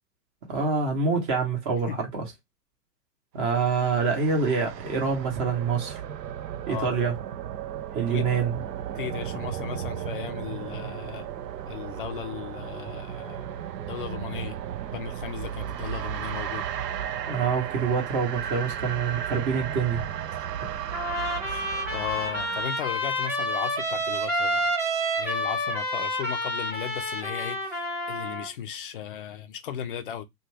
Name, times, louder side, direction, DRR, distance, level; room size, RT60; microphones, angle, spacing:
voice 1, 0.5-2.2 3.3-6.0 6.7-7.2 7.9-8.6 17.3-20.0, right 5 dB, 30° right, 0.9 m, -26 dB
sound 1, 3.7-22.6, right 10 dB, 75° right, 0.6 m, -35 dB
voice 2, 8.9-11.3 11.7-13.6 13.9-14.6 14.9-16.7 21.4-24.7 25.2-30.2, left 9 dB, 35° left, 0.4 m, -36 dB
Trumpet, 20.9-28.5, equal, 5° right, 0.9 m, -29 dB
2.5 x 2.2 x 3.1 m
hypercardioid pair, 120°, 50 cm